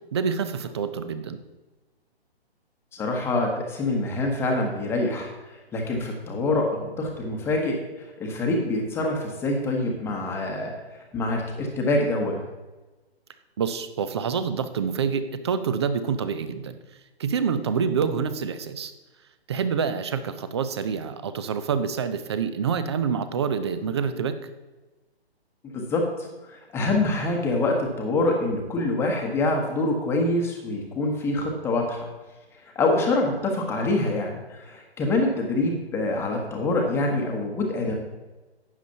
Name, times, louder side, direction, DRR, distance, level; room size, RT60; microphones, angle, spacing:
voice 1, 0.1-1.4 13.6-16.8 17.2-18.9 19.5-24.4, right 6 dB, 25° right, 12 dB, 0.5 m, -27 dB
voice 2, 2.9-10.7 11.1-12.4 25.6-32.1 32.7-37.9, left 2 dB, 10° left, 1 dB, 1.1 m, -25 dB
12.0 x 9.2 x 2.9 m, 1.2 s
figure-of-eight pair, 140°, 32 cm